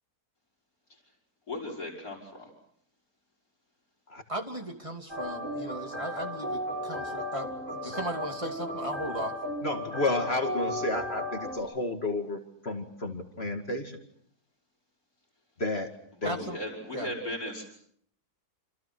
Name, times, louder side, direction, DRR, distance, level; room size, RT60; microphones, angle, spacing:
voice 1, 1.5-2.5 16.1-17.7, left 1 dB, 65° left, 1 dB, 6.3 m, -37 dB
voice 2, 4.3-9.4 16.2-16.6 16.9-17.1, right 1 dB, 20° right, 3 dB, 2.8 m, -36 dB
sound 1, 5.1-11.6, left 1 dB, 50° right, 5.3 m, -35 dB
voice 3, 9.6-14.0 15.6-15.9 16.2-16.3, left 2 dB, 40° left, 5 dB, 2.4 m, -31 dB
28.0 x 28.0 x 6.1 m, 0.65 s
omnidirectional pair, 1.7 m